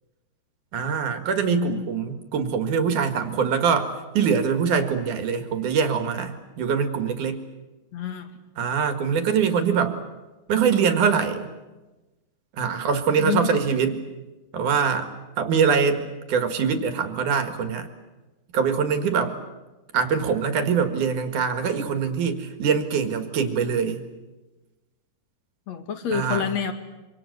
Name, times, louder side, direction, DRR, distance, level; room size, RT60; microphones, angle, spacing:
voice 1, 0.7-7.4 8.6-10.0 10.5-11.5 12.6-14.0 14.5-15.1 15.4-17.9 18.5-19.4 19.9-24.0 26.1-26.5, right 6 dB, 55° right, 7 dB, 2.9 m, -23 dB
voice 2, 1.4-1.9 7.9-8.3 13.2-13.6 25.7-26.7, left 8 dB, 50° left, 7 dB, 2.6 m, -28 dB
25.5 x 25.5 x 8.1 m, 1.1 s
omnidirectional pair, 4.8 m